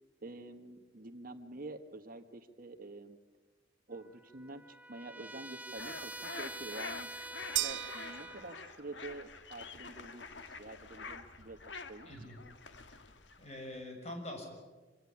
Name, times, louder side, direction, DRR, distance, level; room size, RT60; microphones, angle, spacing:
voice 1, 0.2-3.2 3.9-7.1 7.5-11.6 11.9-12.2, right 2 dB, 50° right, 8 dB, 1.3 m, -48 dB
Trumpet, 3.9-8.6, right 2 dB, 10° right, 0.8 m, -47 dB
sound 1, 5.7-13.8, left 4 dB, 80° left, 1.6 m, -47 dB
sound 2, 7.6-9.0, right 14 dB, 80° right, 0.8 m, -37 dB
voice 2, 12.1-12.4 12.9-13.0 13.4-14.4, left 1 dB, 40° left, 3 dB, 6.2 m, -44 dB
26.0 x 17.0 x 9.9 m, 1.3 s
head